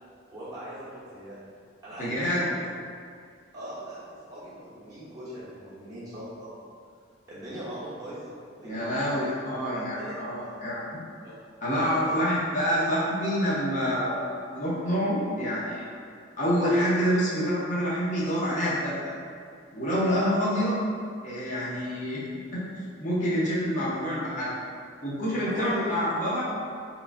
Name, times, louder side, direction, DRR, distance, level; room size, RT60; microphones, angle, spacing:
voice 1, 0.3-1.4 1.8-2.6 3.5-6.6 7.3-9.4 9.7-10.2 11.2-11.3 11.7-12.3 25.4-25.9, right 1 dB, 20° right, -12 dB, 0.8 m, -40 dB
voice 2, 2.0-2.5 8.6-11.0 11.6-15.8 16.4-19.0 19.7-20.8 21.2-22.2 22.5-22.7 23.0-24.5 25.0-26.4, equal, 40° left, -8 dB, 0.5 m, -27 dB
2.9 x 2.3 x 2.4 m, 2.3 s
head